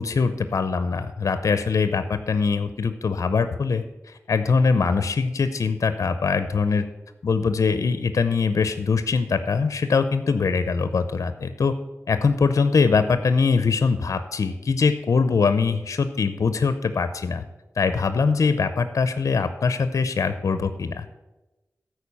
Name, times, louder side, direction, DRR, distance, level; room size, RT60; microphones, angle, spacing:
voice 1, 0.0-6.9 7.2-11.7 12.1-17.4 17.8-21.1, left 5 dB, 70° left, 11 dB, 0.6 m, -22 dB
13.0 x 4.6 x 6.9 m, 1.0 s
cardioid pair, 60°, 6 cm